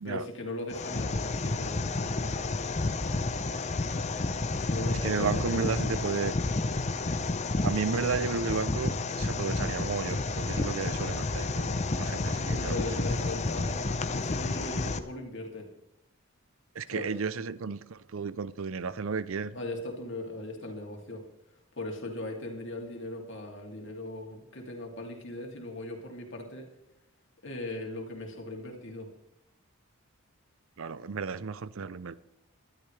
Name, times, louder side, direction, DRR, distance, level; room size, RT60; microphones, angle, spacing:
voice 1, 0.0-2.6 4.6-6.1 12.5-15.7 16.9-17.1 19.5-21.2 21.7-26.7 27.4-29.1, left 1 dB, 55° left, 2.7 m, -39 dB
sound 1, 0.7-15.0, left 3 dB, 30° left, 0.6 m, -31 dB
voice 2, 5.0-6.4 7.6-12.7 16.8-19.6 30.8-32.2, right 5 dB, 65° right, 0.5 m, -33 dB
19.5 x 12.0 x 3.3 m
head